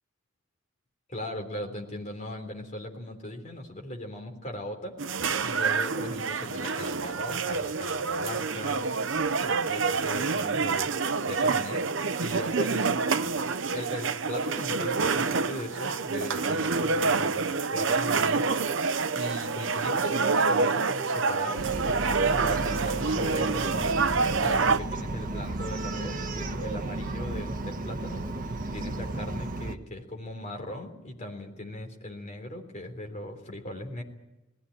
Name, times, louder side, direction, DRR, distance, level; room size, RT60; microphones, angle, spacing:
voice 1, 1.1-5.0 5.4-8.8 9.3-10.9 11.2-11.9 12.2-18.6 19.2-24.0 24.4-28.2 28.7-34.0, left 1 dB, 35° left, 2 dB, 3.6 m, -38 dB
sound 1, 5.0-24.8, right 4 dB, 60° right, 0.7 m, -27 dB
Bark, 21.6-29.8, right 2 dB, 40° right, 1.2 m, -33 dB
20.0 x 16.0 x 9.9 m, 1.0 s
head